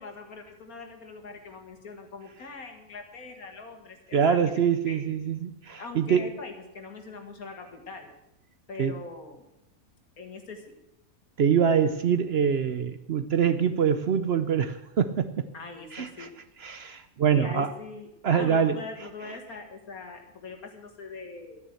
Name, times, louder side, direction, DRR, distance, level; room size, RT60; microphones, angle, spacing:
voice 1, 0.0-4.5 4.9-5.0 5.8-8.1 8.7-9.4 10.2-10.7 15.5-16.3 17.3-21.6, left 4 dB, 80° left, 4 dB, 2.3 m, -42 dB
voice 2, 4.1-6.3 8.8-9.0 11.4-15.5 15.9-16.3 16.6-17.7 18.2-18.8, right 7 dB, 55° right, 11 dB, 0.7 m, -24 dB
12.0 x 9.6 x 7.8 m, 0.89 s
omnidirectional pair, 1.5 m